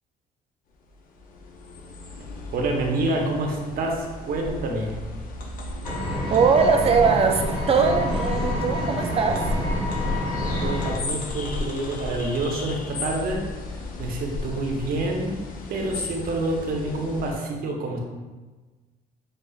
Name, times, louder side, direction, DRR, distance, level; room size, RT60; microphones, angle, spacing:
sound 1, 0.9-17.3, left 2 dB, 55° left, 0.6 m, -34 dB
voice 1, 2.5-5.0 10.6-13.4 14.0-15.4 15.7-18.0, right 2 dB, 60° right, 1 dB, 0.8 m, -27 dB
Engine, 5.8-10.9, left 1 dB, 35° left, 1.3 m, -28 dB
voice 2, 6.3-9.4, right 5 dB, 35° right, 4 dB, 0.5 m, -21 dB
6.3 x 2.4 x 2.3 m, 1.3 s
cardioid pair, 110°, 17 cm